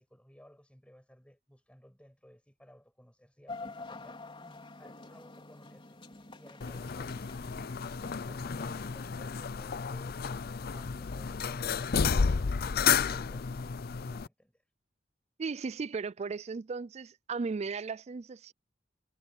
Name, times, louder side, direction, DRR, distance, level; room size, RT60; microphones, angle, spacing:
voice 1, 0.0-7.5 8.2-10.4 10.7-14.6, equal, 5° left, 7.2 m, -59 dB
sound 1, 3.5-9.1, left 2 dB, 30° left, 4.1 m, -47 dB
sound 2, 6.6-14.3, left 6 dB, 55° left, 0.5 m, -32 dB
voice 2, 15.4-18.5, right 4 dB, 35° right, 0.4 m, -36 dB
head